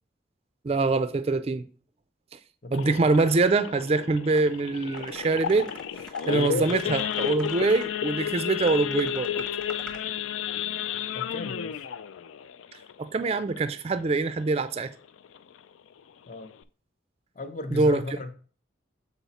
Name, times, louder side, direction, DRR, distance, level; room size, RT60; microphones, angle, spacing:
voice 1, 0.6-1.6 2.7-5.7 6.3-9.5 13.0-14.9 17.7-18.0, right 3 dB, 30° right, 0.3 m, -24 dB
voice 2, 2.6-3.1 6.3-7.0 11.1-11.9 16.3-16.5 17.3-18.3, left 2 dB, 40° left, 0.7 m, -36 dB
Idling / Accelerating revving vroom / Sawing, 2.7-13.8 14.2-14.4 14.7-14.8 15.2-15.5 16.0-16.1 16.3-16.6, left 9 dB, 90° left, 0.4 m, -32 dB
sound 1, 4.3-4.5 4.9-7.9 8.7-10.0, equal, 5° left, 0.8 m, -45 dB
7.0 x 4.1 x 4.1 m
head